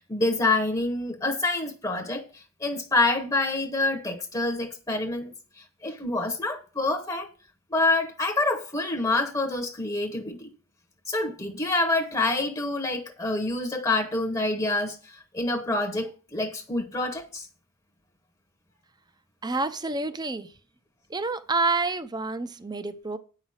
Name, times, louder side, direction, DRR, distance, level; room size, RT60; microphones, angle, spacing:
voice 1, 0.0-7.3 7.7-10.5 11.1-17.5, left 2 dB, 15° left, 1.0 m, -27 dB
voice 2, 19.4-20.5 21.1-23.2, right 3 dB, 20° right, 0.7 m, -28 dB
9.1 x 5.7 x 6.4 m
head